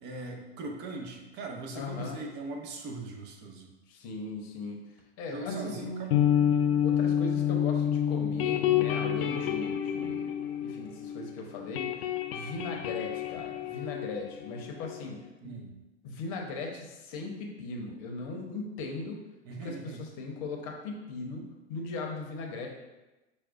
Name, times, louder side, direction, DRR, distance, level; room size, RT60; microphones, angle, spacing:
voice 1, 0.0-3.7 5.3-6.3 15.4-15.7 19.4-20.0, right 3 dB, 30° right, 2 dB, 0.6 m, -40 dB
voice 2, 1.7-2.2 3.9-4.8 5.2-5.8 6.8-10.3 10.6-11.9 12.3-15.6 16.0-19.2 19.5-21.4 21.7-22.7, left 3 dB, 40° left, 1 dB, 0.8 m, -38 dB
Laba Daba Dub (Guitar), 5.5-11.3 11.5-15.0, left 9 dB, 60° left, 0.5 m, -29 dB
5.9 x 2.3 x 2.4 m, 1.1 s
hypercardioid pair, 105°, 33 cm